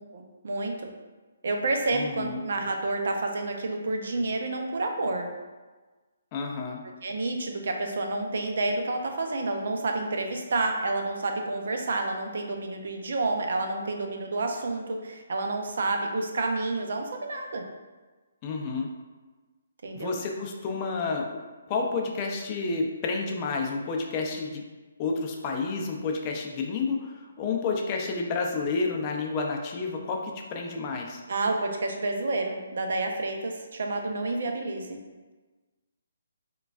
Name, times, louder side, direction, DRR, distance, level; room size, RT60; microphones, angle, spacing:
voice 1, 0.1-0.9 1.4-5.3 7.0-17.6 19.8-20.2 31.3-35.0, right 2 dB, 65° right, 3 dB, 0.5 m, -29 dB
voice 2, 1.9-2.4 6.3-6.8 18.4-18.9 19.9-21.4 21.7-24.6 25.0-31.2, left 4 dB, 30° left, 1 dB, 0.5 m, -30 dB
4.7 x 2.3 x 2.4 m, 1.3 s
hypercardioid pair, 150°, 0 cm